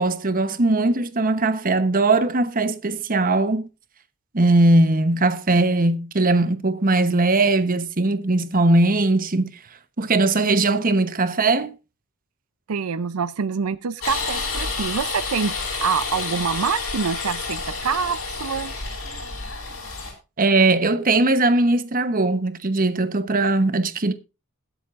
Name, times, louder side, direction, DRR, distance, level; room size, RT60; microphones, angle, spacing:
voice 1, 0.0-3.7 4.3-9.5 10.0-11.7 20.4-24.1, right 2 dB, 40° right, 1.0 m, -20 dB
voice 2, 12.7-18.7, right 6 dB, 80° right, 0.5 m, -26 dB
sound 1, 14.0-20.1, left 4 dB, 70° left, 6.1 m, -29 dB
21.0 x 8.1 x 2.5 m
head